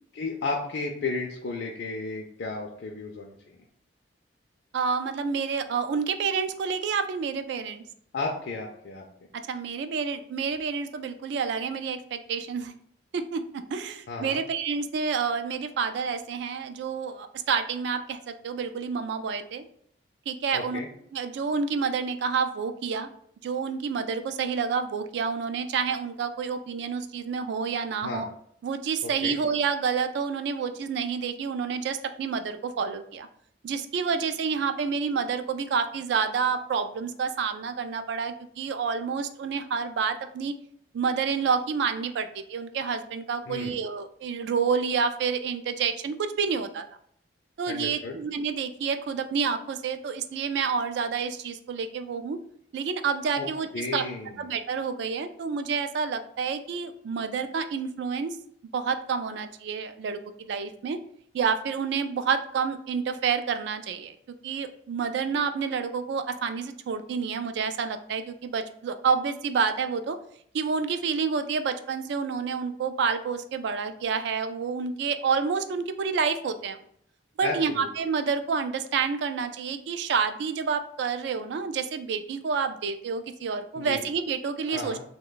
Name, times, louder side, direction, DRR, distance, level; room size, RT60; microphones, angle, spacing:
voice 1, 0.1-3.6 8.1-9.0 14.1-14.4 20.5-20.9 28.0-28.3 29.0-29.4 43.5-43.8 47.7-48.2 53.4-53.5 53.7-54.4 77.4-77.9 83.8-84.0 84.7-85.0, left 3 dB, 65° left, 0 dB, 0.4 m, -33 dB
voice 2, 4.7-7.8 9.5-12.7 13.1-19.6 20.3-20.8 21.1-23.1 23.4-28.3 28.6-33.3 33.6-40.5 40.9-46.8 47.6-52.4 52.7-54.1 54.4-58.4 58.7-61.0 61.3-64.2 64.4-70.2 70.5-76.8 77.4-85.0, right 5 dB, 65° right, 10 dB, 0.3 m, -29 dB
3.0 x 2.2 x 3.8 m, 0.66 s
head